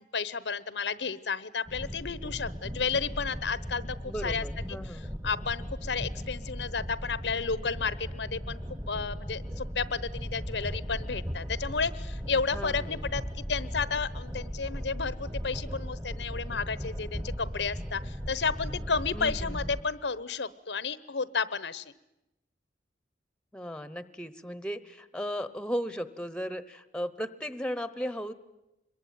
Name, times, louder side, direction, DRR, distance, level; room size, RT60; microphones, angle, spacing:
voice 1, 0.0-4.4 4.8-8.6 8.9-21.8, left 5 dB, 80° left, 17 dB, 1.0 m, -32 dB
sound 1, 1.7-19.8, equal, 15° right, 1.3 m, -37 dB
voice 2, 4.0-5.1 12.5-13.0 19.1-19.8 23.5-28.3, equal, 5° left, 14 dB, 1.0 m, -36 dB
25.5 x 22.0 x 9.4 m, 0.93 s
head